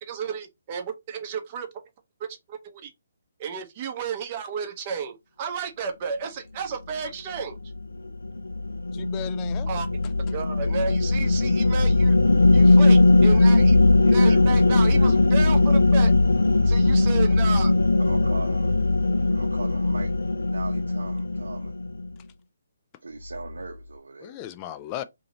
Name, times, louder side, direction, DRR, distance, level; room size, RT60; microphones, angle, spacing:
voice 1, 0.0-1.7 2.5-2.9 3.4-7.6 9.7-9.9 10.3-12.2 12.5-13.8 14.1-16.1 16.6-17.7, right 6 dB, 35° right, 0.8 m, -32 dB
sound 1, 7.6-22.1, left 2 dB, 80° left, 0.6 m, -19 dB
voice 2, 8.9-10.1 24.2-25.0, left 12 dB, 25° left, 0.4 m, -37 dB
voice 3, 14.0-15.2 18.0-18.8 19.3-20.1 20.4-21.8 23.0-24.4, right 3 dB, 75° right, 0.8 m, -39 dB
2.9 x 2.8 x 3.7 m
figure-of-eight pair, 140°, 0 cm